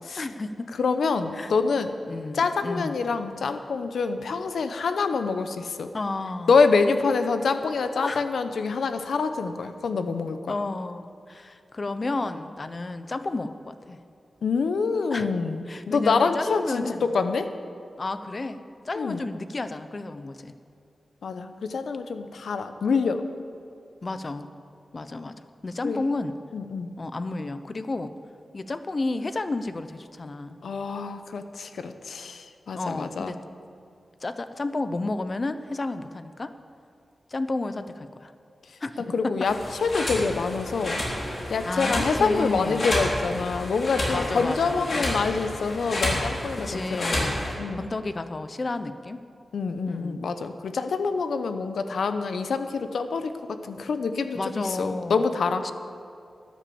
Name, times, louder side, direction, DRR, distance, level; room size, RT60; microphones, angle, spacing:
voice 1, 0.2-0.7 1.3-1.5 2.1-3.0 5.9-6.5 8.0-8.2 10.5-14.0 15.1-15.3 15.7-17.1 18.0-18.6 18.8-20.5 24.0-24.5 24.9-25.3 25.6-26.4 27.0-28.1 28.5-30.6 32.7-33.4 34.2-36.5 37.3-38.3 38.8-39.5 41.6-42.9 44.1-45.0 46.6-47.4 47.8-49.2 49.9-50.2 54.3-55.4 55.6-55.7, left 2 dB, 45° left, 11 dB, 0.7 m, -32 dB
voice 2, 0.8-1.9 2.3-5.9 6.5-10.5 14.4-17.5 19.0-19.2 21.2-23.2 25.8-26.1 26.5-26.9 30.6-33.3 39.1-39.5 39.8-41.0 41.5-47.9 49.5-53.3 53.6-55.7, left 4 dB, 90° left, 9 dB, 0.8 m, -26 dB
sound 1, 39.4-47.5, left 1 dB, 65° left, 3.7 m, -30 dB
12.5 x 10.0 x 7.1 m, 2.5 s
wide cardioid pair, 75°, 0 cm